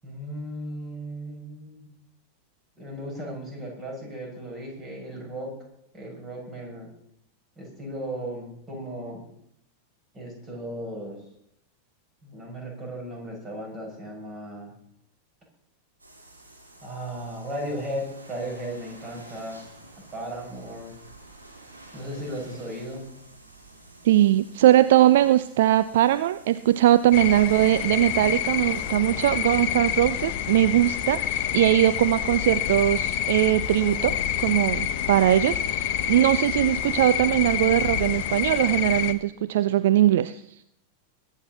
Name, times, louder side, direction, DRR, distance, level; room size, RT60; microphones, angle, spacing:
voice 1, 0.0-1.9 2.8-5.5 5.9-6.9 7.6-9.2 10.1-11.2 12.2-14.7 16.8-19.6 20.1-20.9 21.9-23.0, right 1 dB, 20° right, 0 dB, 6.8 m, -36 dB
sound 1, 16.0-28.9, right 2 dB, 80° right, 4.1 m, -50 dB
voice 2, 24.0-40.6, right 13 dB, 55° right, 14 dB, 0.4 m, -21 dB
sound 2, 27.1-39.1, left 10 dB, 45° left, 1.0 m, -27 dB
22.0 x 10.0 x 4.2 m, 0.74 s
figure-of-eight pair, 90°, 0 cm